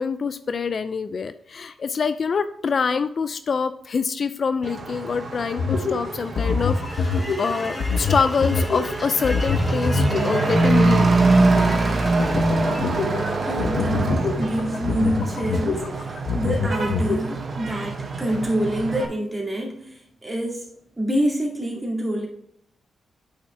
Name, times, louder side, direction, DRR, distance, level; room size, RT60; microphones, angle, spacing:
voice 1, 0.0-11.1, left 5 dB, 55° left, 11 dB, 0.4 m, -25 dB
Truck / Accelerating revving vroom, 4.6-19.1, right 3 dB, 50° right, 1.0 m, -24 dB
sound 1, 5.6-17.2, left 4 dB, 70° left, 0.8 m, -26 dB
sound 2, 6.4-14.5, left 1 dB, 15° left, 1.4 m, -35 dB
voice 2, 13.4-20.6 21.0-22.3, right 1 dB, 15° right, -1 dB, 2.3 m, -26 dB
8.6 x 5.5 x 3.3 m, 0.69 s
cardioid pair, 90°, 0 cm